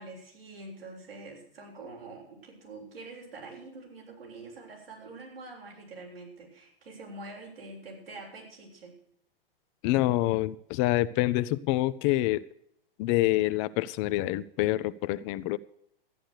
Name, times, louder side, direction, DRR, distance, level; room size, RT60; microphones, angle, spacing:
voice 1, 0.0-8.9, right 2 dB, 80° right, -2 dB, 7.2 m, -45 dB
voice 2, 9.8-12.4 13.0-15.6, left 17 dB, 35° left, 15 dB, 0.5 m, -26 dB
13.5 x 10.0 x 6.6 m, 0.70 s
figure-of-eight pair, 110°, 29 cm